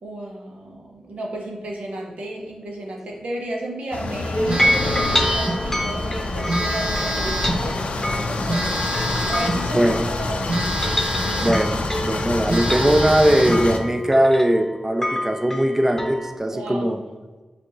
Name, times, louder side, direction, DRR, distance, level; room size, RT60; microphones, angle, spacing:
voice 1, 0.0-10.8 16.5-17.0, right 1 dB, 80° right, 0 dB, 0.9 m, -33 dB
sound 1, 3.9-13.8, left 2 dB, 70° left, 0.5 m, -27 dB
sound 2, 4.3-10.3 10.7-16.4, equal, 15° left, 0.8 m, -28 dB
Telephone, 4.5-5.6 6.5-7.7 8.5-9.7 10.5-11.7 12.1-12.2 12.5-13.7, right 1 dB, 50° right, 0.7 m, -27 dB
voice 2, 9.7-10.1 11.4-17.0, right 1 dB, 20° right, 5 dB, 0.4 m, -20 dB
5.1 x 3.4 x 3.0 m, 1.3 s
cardioid pair, 50°, 2 cm